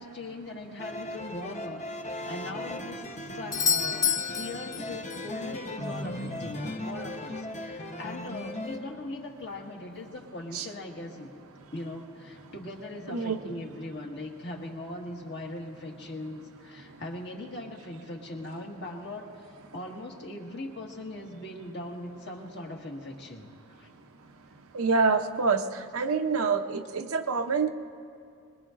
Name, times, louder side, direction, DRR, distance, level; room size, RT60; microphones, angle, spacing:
voice 1, 0.0-11.3 11.7-19.3 19.7-23.5 23.8-23.9, left 2 dB, 55° left, 0 dB, 1.7 m, -40 dB
sound 1, 0.8-8.8, left 1 dB, 35° left, 0.9 m, -37 dB
Doorbell, 3.5-5.4 9.4-9.5, left 7 dB, 15° left, 0.4 m, -29 dB
voice 2, 13.1-13.4 24.7-25.6 25.9-27.7, right 4 dB, 90° right, 6 dB, 0.7 m, -26 dB
23.5 x 21.0 x 2.5 m, 2.4 s
head